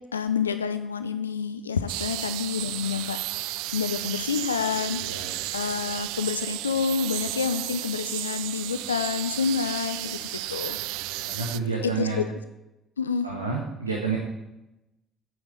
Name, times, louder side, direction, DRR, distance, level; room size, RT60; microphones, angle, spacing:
voice 1, 0.1-5.0 5.5-10.8 11.8-12.2 13.0-13.3, left 6 dB, 80° left, 11 dB, 0.4 m, -28 dB
sound 1, 1.9-11.6, right 18 dB, 65° right, 0.3 m, -33 dB
voice 2, 5.0-5.4 11.1-12.2 13.2-14.2, right 4 dB, 85° right, -1 dB, 1.2 m, -30 dB
8.4 x 7.9 x 8.0 m, 0.94 s
figure-of-eight pair, 50°, 0 cm